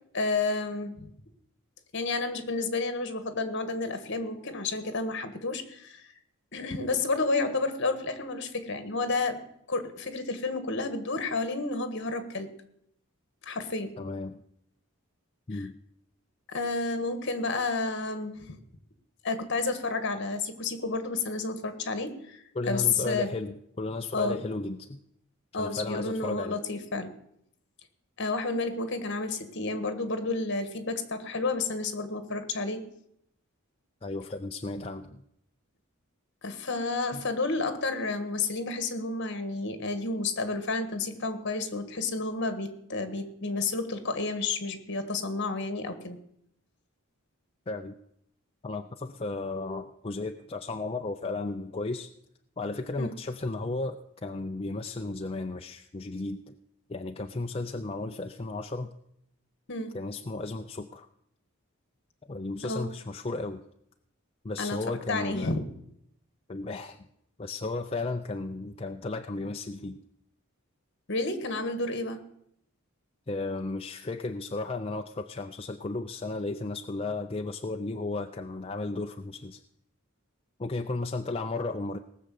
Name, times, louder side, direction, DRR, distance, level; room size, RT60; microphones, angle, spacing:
voice 1, 0.1-1.1 1.9-6.1 6.5-9.4 9.7-12.5 13.4-13.9 15.5-15.6 16.5-18.6 19.2-23.3 24.1-24.4 25.5-27.1 28.2-32.8 36.4-46.2 53.0-53.1 59.7-60.0 62.6-62.9 64.6-65.6 71.1-72.2, left 3 dB, 55° left, 9 dB, 1.6 m, -31 dB
voice 2, 14.0-14.4 15.5-15.7 22.5-25.0 25.6-26.6 34.0-35.2 37.1-37.2 47.7-48.0 48.6-52.1 52.6-56.6 56.9-58.9 59.9-61.1 62.3-63.6 64.4-65.6 66.5-67.1 67.4-70.0 73.3-79.6 80.6-82.0, left 3 dB, 25° left, 5 dB, 0.5 m, -34 dB
18.5 x 6.6 x 7.7 m, 0.75 s
head